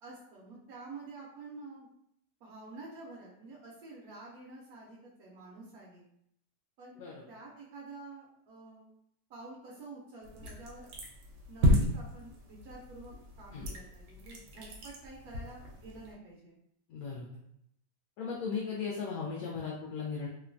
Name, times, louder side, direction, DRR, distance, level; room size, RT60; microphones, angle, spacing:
voice 1, 0.0-1.9 2.4-6.0 6.8-7.0 7.3-8.9 9.3-10.9 11.5-16.5, right 3 dB, 70° right, -4 dB, 1.0 m, -49 dB
sound 1, 10.2-16.1, equal, 90° right, 1.3 m, -33 dB
voice 2, 16.9-17.3 18.2-20.3, left 5 dB, 70° left, -4 dB, 0.9 m, -37 dB
3.0 x 2.2 x 2.5 m, 0.74 s
omnidirectional pair, 1.8 m